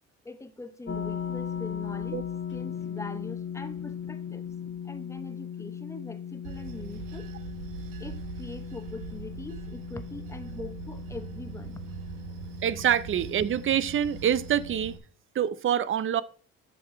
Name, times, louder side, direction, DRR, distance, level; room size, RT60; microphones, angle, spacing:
voice 1, 0.2-2.2 2.5-4.5 4.8-7.3 8.0-12.0, left 2 dB, 10° left, 0.9 m, -42 dB
sound 1, 0.9-15.0, left 8 dB, 35° left, 1.2 m, -38 dB
Bell / Train, 6.4-15.0, right 7 dB, 85° right, 1.1 m, -42 dB
voice 2, 12.6-15.0 15.4-16.2, right 9 dB, 40° right, 0.6 m, -26 dB
7.9 x 5.9 x 4.5 m
supercardioid pair, 85°, 32 cm